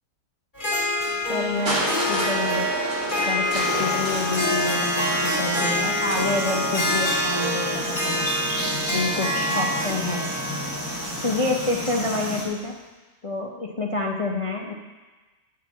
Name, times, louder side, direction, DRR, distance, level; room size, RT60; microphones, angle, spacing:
Harp, 0.6-12.4, left 1 dB, 30° left, 2.0 m, -26 dB
voice 1, 1.3-2.7 3.2-8.3 8.9-10.3 11.2-12.8 13.2-14.7, left 2 dB, 60° left, -1 dB, 0.3 m, -28 dB
Crushing, 1.7-7.6 8.5-8.6, right 2 dB, 85° right, 2.7 m, -32 dB
sound 1, 3.5-12.4, equal, 10° right, 2.0 m, -32 dB
10.5 x 4.7 x 7.1 m, 1.2 s
omnidirectional pair, 1.8 m